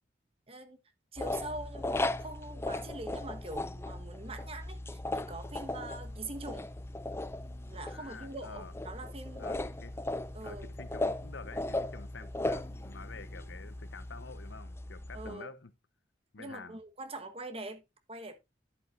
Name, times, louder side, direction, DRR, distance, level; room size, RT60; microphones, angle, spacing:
voice 1, 0.5-0.8 1.1-6.7 7.7-9.8 10.3-10.7 15.1-15.5 16.4-17.8 18.1-18.4, right 2 dB, 30° right, 1.3 m, -43 dB
sound 1, 1.2-15.3, left 2 dB, 15° left, 0.4 m, -37 dB
sound 2, 5.4-14.5, left 1 dB, 30° left, 2.9 m, -65 dB
voice 2, 7.9-8.7 9.4-10.0 10.4-15.7 16.3-16.8, left 4 dB, 80° left, 0.9 m, -48 dB
10.5 x 8.8 x 2.6 m
head